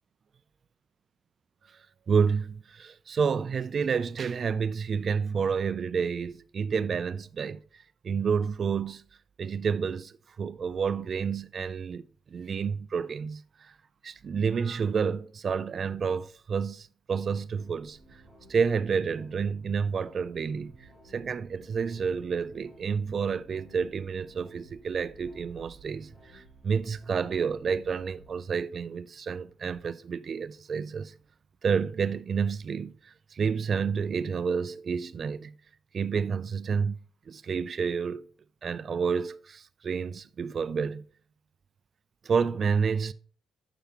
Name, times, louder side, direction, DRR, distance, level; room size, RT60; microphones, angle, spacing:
voice 1, 2.1-7.6 8.0-9.0 9.4-12.0 12.3-13.4 14.0-18.0 18.5-20.7 21.1-31.1 31.6-32.9 33.3-35.5 35.9-37.0 37.3-38.3 38.6-41.0 42.3-43.1, right 6 dB, 45° right, 0.4 m, -29 dB
sound 1, 17.5-28.4, right 1 dB, 35° left, 2.6 m, -56 dB
6.7 x 6.0 x 2.9 m
cardioid pair, 90°, 0 cm